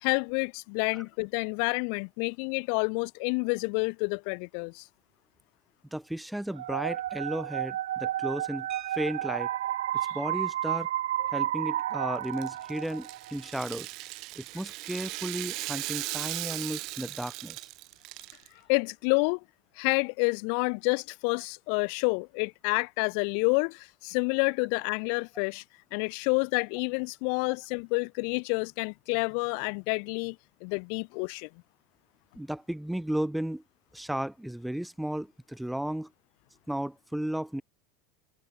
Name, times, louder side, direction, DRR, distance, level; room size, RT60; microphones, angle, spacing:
voice 1, 0.0-4.8 10.0-10.1 18.7-19.4 19.8-25.6 25.9-30.4 30.6-31.5, left 40 dB or more, 65° left, 0.8 m, -29 dB
voice 2, 5.9-8.7 8.9-9.5 10.1-10.9 11.3-13.9 14.4-17.7 32.4-33.6 33.9-36.1 36.7-37.6, right 1 dB, 5° right, 0.4 m, -34 dB
sound 1, 6.6-13.4, right 12 dB, 80° right, 1.2 m, -31 dB
sound 2, 8.7-9.8 11.2-11.3 11.7-11.9 12.3-12.5, right 10 dB, 40° right, 2.5 m, -48 dB
Rattle (instrument), 12.2-18.5, right 22 dB, 60° right, 0.6 m, -38 dB
hypercardioid pair, 85°, 0 cm